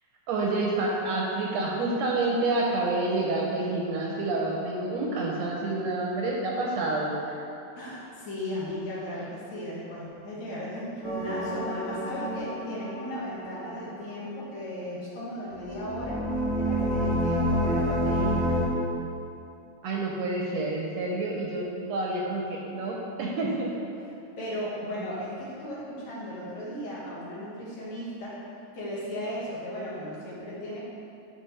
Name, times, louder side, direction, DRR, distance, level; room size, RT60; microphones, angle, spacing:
voice 1, 0.3-7.4 19.8-23.7, right 2 dB, 75° right, -2 dB, 1.8 m, -28 dB
voice 2, 7.8-18.5 24.0-24.1 24.4-28.3 28.7-30.8, equal, 70° left, -7 dB, 2.8 m, -36 dB
sound 1, 11.0-13.9 15.6-18.7, equal, 30° right, 0.8 m, -28 dB
10.0 x 5.1 x 3.3 m, 2.7 s
omnidirectional pair, 3.5 m